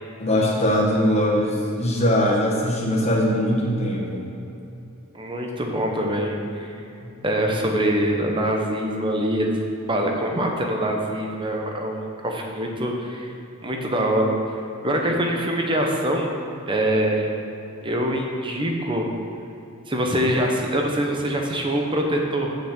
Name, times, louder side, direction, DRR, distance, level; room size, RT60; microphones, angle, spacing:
voice 1, 0.2-4.3 7.0-7.1, equal, 30° left, -3 dB, 1.4 m, -21 dB
voice 2, 5.1-6.8 7.2-13.3 13.6-14.3 14.8-16.3 16.6-17.3 17.8-19.1 19.9-22.6, right 1 dB, 20° right, 1 dB, 0.9 m, -24 dB
7.2 x 5.8 x 7.5 m, 2.9 s
head